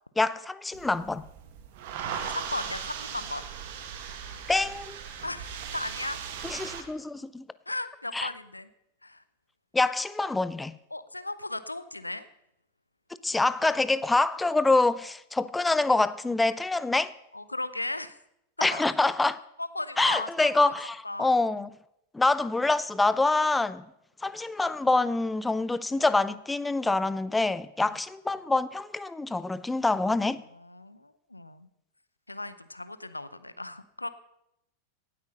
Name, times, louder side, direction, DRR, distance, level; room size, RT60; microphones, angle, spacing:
voice 1, 0.2-1.2 4.5-5.0 6.4-7.4 8.1-8.3 9.7-10.7 13.2-17.1 18.6-19.4 20.0-21.7 22.1-23.8 24.2-30.4, left 3 dB, 10° left, 16 dB, 0.5 m, -26 dB
sound 1, 0.7-6.8, right 7 dB, 50° right, 1.7 m, -38 dB
voice 2, 2.3-3.4 5.2-6.2 7.7-8.7 9.0-9.2 10.9-12.2 17.3-18.2 18.6-18.8 19.6-20.3 20.6-20.7 21.0-21.3 30.5-31.7 32.3-34.1, left 2 dB, 85° left, 14 dB, 0.7 m, -36 dB
17.5 x 8.5 x 5.4 m, 0.80 s
figure-of-eight pair, 90°, 0 cm